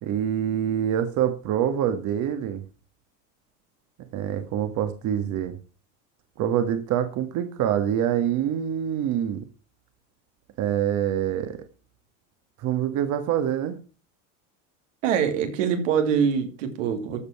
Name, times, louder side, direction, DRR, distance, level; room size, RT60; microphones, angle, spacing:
voice 1, 0.0-2.6 4.1-5.5 6.4-9.4 10.6-11.6 12.6-13.8, right 10 dB, 50° right, 1.6 m, -25 dB
voice 2, 15.0-17.2, right 7 dB, 85° right, 2.7 m, -24 dB
14.0 x 5.4 x 5.9 m
supercardioid pair, 110°, 37 cm